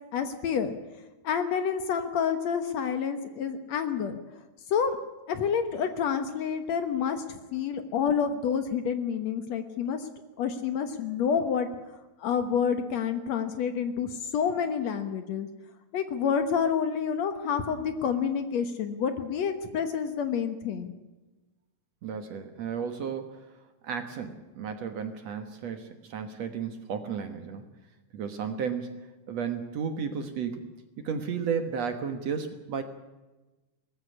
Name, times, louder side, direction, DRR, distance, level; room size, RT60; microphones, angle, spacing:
voice 1, 0.1-0.7 1.2-4.2 4.7-5.0 5.3-10.1 10.4-11.7 12.2-15.5 15.9-20.9, left 7 dB, 70° left, 8 dB, 1.7 m, -28 dB
voice 2, 22.0-23.5 23.8-27.7 28.1-30.7 31.0-32.8, right 6 dB, 60° right, 7 dB, 1.8 m, -33 dB
19.5 x 15.0 x 9.8 m, 1.1 s
omnidirectional pair, 4.7 m